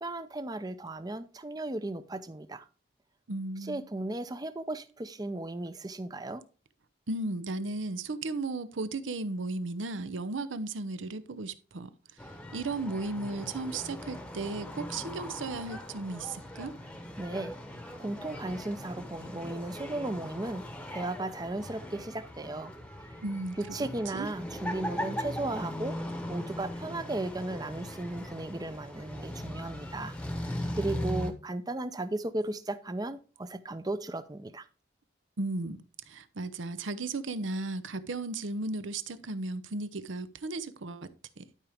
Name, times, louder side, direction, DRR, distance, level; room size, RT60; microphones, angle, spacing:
voice 1, 0.0-2.7 3.6-6.4 17.2-17.5 18.0-20.6 20.9-22.7 23.6-26.0 26.3-30.2 30.8-34.7, right 2 dB, 20° right, 0.5 m, -35 dB
voice 2, 3.3-3.8 7.1-11.9 12.2-16.7 23.2-23.6 24.1-24.3 35.4-35.8 36.1-41.1 41.4-41.5, right 2 dB, 80° right, 0.7 m, -35 dB
sound 1, 12.2-31.3, left 1 dB, 5° left, 0.9 m, -39 dB
11.5 x 5.0 x 3.5 m
head